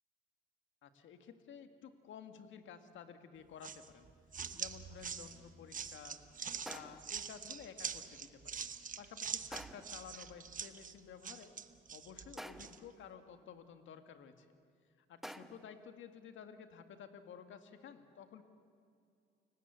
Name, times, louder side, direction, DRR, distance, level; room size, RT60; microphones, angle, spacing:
voice 1, 0.8-4.1 4.5-6.2 6.6-8.7 9.0-11.5 11.9-14.5 15.0-18.4, left 7 dB, 75° left, 8 dB, 2.0 m, -53 dB
sound 1, 3.6-12.8, right 6 dB, 40° right, 1.2 m, -44 dB
sound 2, 4.4-4.5 6.6-7.2 9.5-10.1 12.4-12.9 15.2-15.8, equal, ahead, 1.1 m, -49 dB
29.5 x 17.0 x 8.2 m, 2.4 s
cardioid pair, 90°, 20 cm